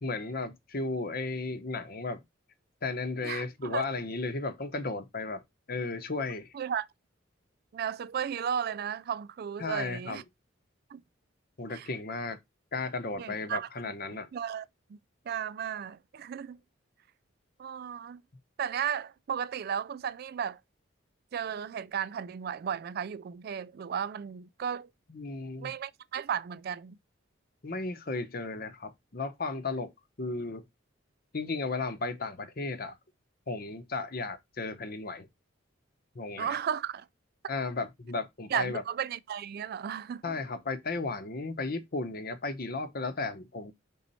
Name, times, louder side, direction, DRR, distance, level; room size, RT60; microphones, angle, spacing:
voice 1, 0.0-2.2 2.8-5.4 5.7-6.5 9.6-10.2 11.6-12.4 12.7-14.3 25.1-25.7 27.6-29.9 30.2-30.6 31.3-32.9 33.5-35.3 36.1-36.6 37.5-38.8 40.2-43.7, left 3 dB, 50° left, 0.9 m, -34 dB
voice 2, 3.2-3.9 6.5-6.9 7.7-10.2 10.9-11.0 11.7-11.9 13.2-13.7 14.3-15.0 15.3-16.6 17.6-18.2 18.6-20.6 21.3-24.9 25.6-27.0 36.4-37.1 38.5-40.4, right 8 dB, 50° right, 0.3 m, -34 dB
5.5 x 4.2 x 4.1 m
head